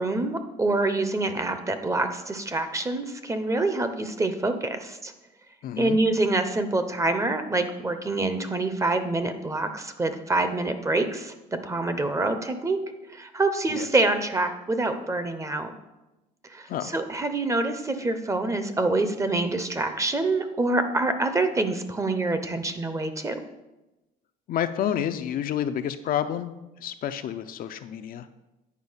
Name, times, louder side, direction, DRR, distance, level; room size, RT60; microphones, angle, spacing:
voice 1, 0.0-5.1 5.8-11.3 11.6-12.8 13.1-15.7 16.5-23.4, right 2 dB, 20° right, 9 dB, 0.7 m, -26 dB
voice 2, 5.6-6.0 13.7-13.9 16.7-16.9 24.5-26.5 26.8-28.3, left 10 dB, 60° left, 9 dB, 0.5 m, -29 dB
9.6 x 4.2 x 5.6 m, 1.0 s
cardioid pair, 110°, 17 cm